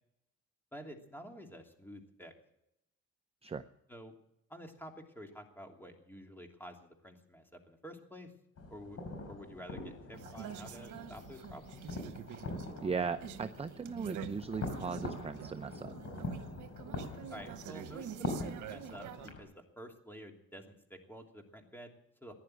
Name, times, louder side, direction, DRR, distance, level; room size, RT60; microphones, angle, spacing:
voice 1, 0.7-2.3 3.9-4.1 4.5-8.3 8.7-9.0 9.3-11.8 17.3-18.1 18.4-19.1 19.4-19.5 19.8-22.3, equal, 5° left, 3 dB, 2.9 m, -50 dB
sound 1, 8.6-19.4, left 2 dB, 55° left, 4.9 m, -43 dB
sound 2, 10.1-19.3, right 10 dB, 80° right, 1.1 m, -47 dB
voice 2, 12.8-15.9, right 5 dB, 20° right, 10 dB, 0.7 m, -38 dB
15.5 x 11.0 x 7.8 m, 0.83 s
cardioid pair, 90°, 30 cm